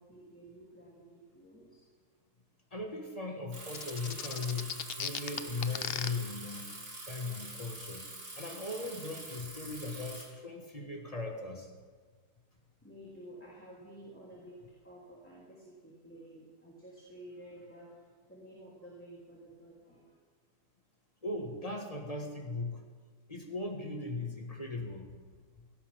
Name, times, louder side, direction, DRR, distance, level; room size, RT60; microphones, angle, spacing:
voice 1, 0.0-1.9 12.8-20.1, right 1 dB, 10° left, -7 dB, 3.2 m, -52 dB
voice 2, 2.7-6.7 7.0-11.7 21.2-22.9 23.3-25.7, left 3 dB, 25° left, 1 dB, 1.8 m, -39 dB
Bicycle, 3.5-10.2, right 2 dB, 80° right, 4.3 m, -45 dB
sound 1, 3.7-6.1, left 8 dB, 55° left, 0.7 m, -36 dB
17.0 x 17.0 x 3.7 m, 1.5 s
omnidirectional pair, 1.6 m